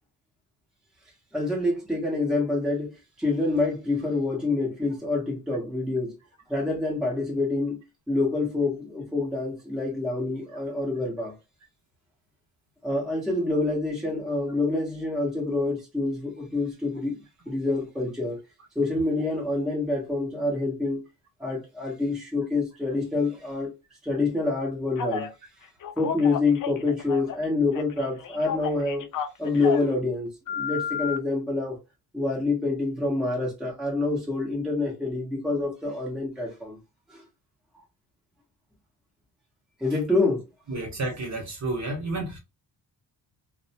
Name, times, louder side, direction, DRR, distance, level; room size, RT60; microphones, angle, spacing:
voice 1, 1.3-2.9 3.2-6.1 6.5-7.8 8.1-11.3 12.8-17.2 17.5-18.4 18.7-21.0 21.4-23.7 24.0-25.3 26.0-29.0 29.4-31.8 32.1-36.8 37.1-37.2 39.8-40.4, left 3 dB, ahead, 0.8 m, -27 dB
Telephone, 25.0-25.3 25.8-27.5 27.7-29.9 30.5-31.2, left 7 dB, 50° left, 0.5 m, -32 dB
voice 2, 40.7-42.4, right 2 dB, 40° right, 1.0 m, -31 dB
2.6 x 2.1 x 2.7 m
cardioid pair, 125°, 42 cm